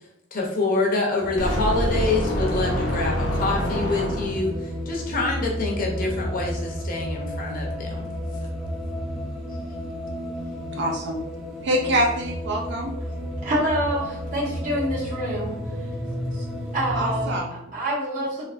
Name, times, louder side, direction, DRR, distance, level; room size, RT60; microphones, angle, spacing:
voice 1, 0.3-7.9, left 2 dB, 45° left, 0 dB, 0.7 m, -26 dB
sound 1, 1.2-17.4, equal, ahead, 0.6 m, -31 dB
sound 2, 1.4-4.6, equal, 75° left, 0.8 m, -27 dB
voice 2, 10.7-11.2 11.6-12.9 16.9-17.5, right 1 dB, 65° right, 0 dB, 0.5 m, -25 dB
voice 3, 13.4-15.6 16.3-16.5 16.7-17.3 17.7-18.4, equal, 45° right, -6 dB, 1.3 m, -26 dB
3.3 x 2.5 x 2.5 m, 0.82 s
head